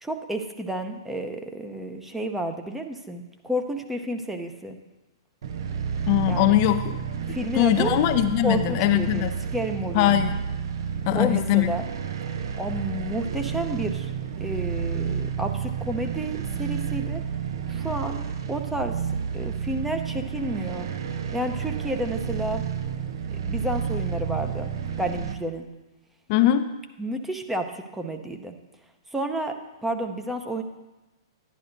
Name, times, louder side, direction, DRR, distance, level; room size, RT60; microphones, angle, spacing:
voice 1, 0.0-4.8 6.3-6.6 7.3-8.0 8.4-10.1 11.1-11.8 12.6-14.1 14.4-17.2 17.7-19.0 19.3-20.9 21.3-22.7 23.4-24.7 25.0-25.7 27.0-28.6 29.1-29.6 29.8-30.6, right 1 dB, 5° right, 5 dB, 0.7 m, -31 dB
sound 1, 5.4-25.3, right 7 dB, 65° right, 0.7 m, -30 dB
voice 2, 6.1-7.0 7.6-9.3 9.9-10.3 11.1-11.7 26.3-26.7, left 13 dB, 45° left, 9 dB, 0.4 m, -21 dB
11.0 x 10.5 x 2.6 m, 1.1 s
hypercardioid pair, 125°, 3 cm